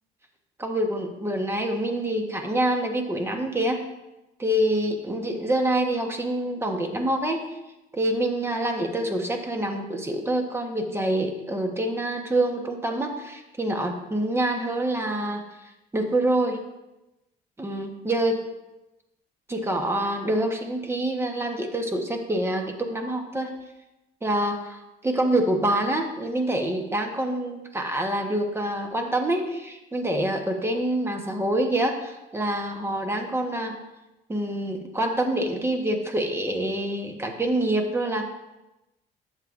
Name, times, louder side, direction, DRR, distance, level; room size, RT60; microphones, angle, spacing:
voice 1, 0.6-3.8 4.4-7.5 7.9-15.4 15.9-16.6 17.6-18.4 19.5-23.5 24.2-33.8 34.3-38.3, right 1 dB, 15° right, 3 dB, 1.2 m, -26 dB
11.5 x 7.4 x 2.6 m, 0.98 s
cardioid pair, 110°, 17 cm